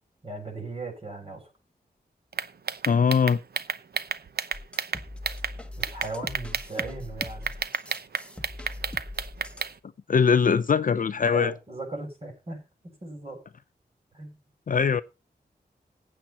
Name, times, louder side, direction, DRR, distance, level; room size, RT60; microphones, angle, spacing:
voice 1, 0.2-1.4 5.8-7.5 11.3-13.4 14.1-14.3, right 2 dB, 35° right, 7.7 m, -37 dB
sound 1, 2.3-5.5 5.8-6.9 7.2-9.7, right 6 dB, 70° right, 0.9 m, -30 dB
voice 2, 2.9-3.4 10.1-11.5 14.7-15.0, left 6 dB, 55° left, 0.5 m, -21 dB
sound 2, 4.5-9.8, left 2 dB, 5° left, 1.2 m, -41 dB
15.5 x 8.7 x 4.2 m
wide cardioid pair, 120°, 17 cm